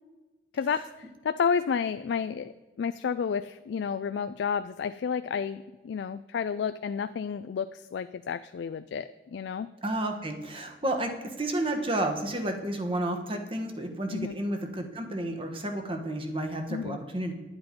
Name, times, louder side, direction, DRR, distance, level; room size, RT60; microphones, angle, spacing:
voice 1, 0.5-9.7 14.1-14.4 16.7-17.0, left 6 dB, 80° left, 12 dB, 0.3 m, -31 dB
voice 2, 9.8-11.1 11.4-17.3, right 1 dB, 30° right, 5 dB, 1.2 m, -31 dB
10.5 x 8.0 x 5.1 m, 1.2 s
head